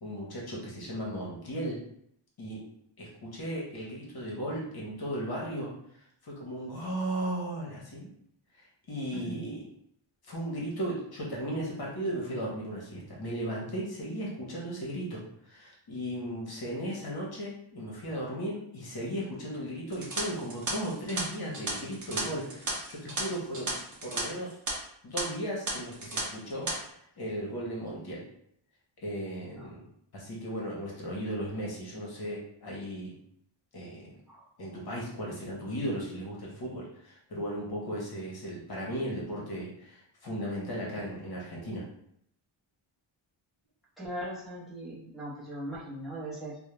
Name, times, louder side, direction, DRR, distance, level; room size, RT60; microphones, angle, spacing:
voice 1, 0.0-1.8 2.4-2.6 3.0-5.7 6.2-8.1 8.6-9.6 10.3-23.7 24.0-24.6 25.0-26.7 27.2-28.2 29.0-29.8 30.1-33.1 33.7-34.1 34.6-41.8, equal, 55° left, -4 dB, 0.8 m, -36 dB
voice 2, 9.1-9.4 29.6-29.7 34.3-34.5 44.0-46.6, right 1 dB, ahead, -6 dB, 0.8 m, -39 dB
sound 1, 19.9-24.2 24.5-24.7 25.2-25.3 25.7-26.2 26.5-26.7, right 2 dB, 40° right, 0.7 m, -34 dB
2.3 x 2.0 x 2.9 m, 0.70 s
wide cardioid pair, 105°, 46 cm